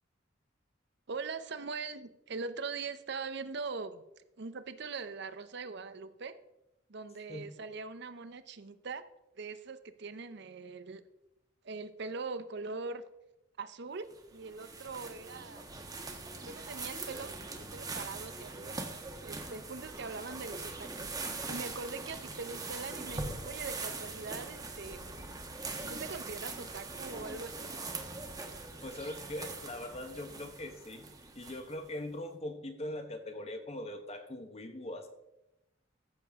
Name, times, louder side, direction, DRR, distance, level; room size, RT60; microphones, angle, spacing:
voice 1, 1.1-4.0 4.4-6.3 6.9-9.0 9.4-11.0 11.6-13.0 13.6-15.6 16.4-18.8 19.2-21.2 21.5-25.0 25.9-27.7, right 4 dB, 65° right, 12 dB, 0.7 m, -42 dB
sound 1, 14.1-31.9, right 3 dB, 20° right, 1.1 m, -42 dB
voice 2, 28.8-31.1 31.3-35.1, left 1 dB, 35° left, 7 dB, 1.1 m, -41 dB
14.5 x 6.9 x 3.6 m, 0.91 s
head